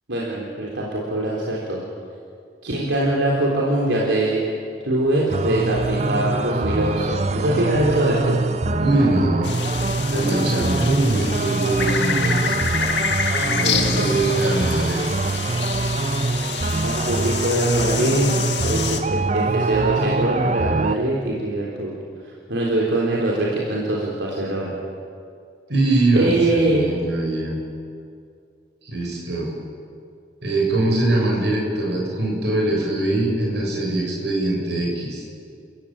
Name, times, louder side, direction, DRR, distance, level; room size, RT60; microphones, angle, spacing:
voice 1, 0.1-1.8 2.6-4.4 4.9-8.4 10.2-10.8 13.6-14.1 16.8-18.3 18.6-19.0 19.3-21.9 22.5-24.8 26.1-26.8, right 1 dB, 85° right, -4 dB, 3.9 m, -23 dB
sound 1, 5.3-21.0, right 3 dB, 35° right, 0.6 m, -24 dB
voice 2, 8.8-9.5 10.1-12.6 13.4-15.0 25.7-27.6 28.8-29.5 30.4-35.2, right 2 dB, 70° right, -1 dB, 6.7 m, -22 dB
sound 2, 9.4-19.0, left 6 dB, 80° left, 2.1 m, -28 dB
30.0 x 15.5 x 8.9 m, 2.3 s
head